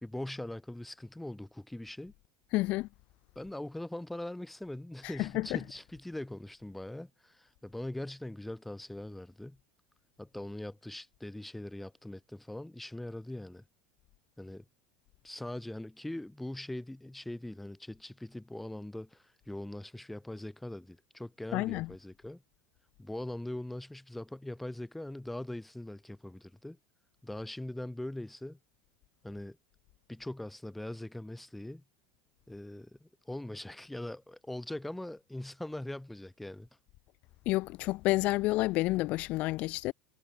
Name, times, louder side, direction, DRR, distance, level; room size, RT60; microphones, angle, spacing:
voice 1, 0.0-2.1 3.3-9.6 10.2-13.6 14.4-14.7 15.2-22.4 23.0-26.8 27.2-28.6 29.2-29.6 30.1-31.8 32.5-36.7, left 1 dB, 5° left, 1.1 m, -41 dB
voice 2, 2.5-2.9 5.2-5.6 21.5-21.9 37.5-39.9, left 20 dB, 50° left, 0.5 m, -29 dB
supercardioid pair, 140°, 3 cm